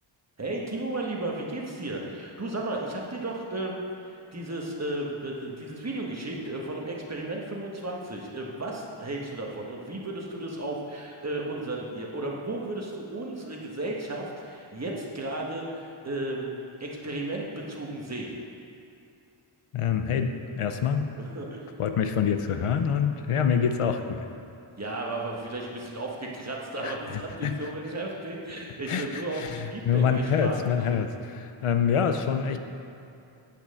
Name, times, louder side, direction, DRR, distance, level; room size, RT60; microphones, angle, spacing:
voice 1, 0.4-3.8 4.3-16.5 16.8-18.4 21.2-21.6 24.8-30.6, right 2 dB, 30° right, -2 dB, 1.6 m, -34 dB
voice 2, 19.7-21.1 21.8-24.2 26.8-27.7 28.9-32.6, left 7 dB, 90° left, 7 dB, 0.8 m, -26 dB
8.9 x 6.1 x 7.7 m, 2.6 s
wide cardioid pair, 115°, 50 cm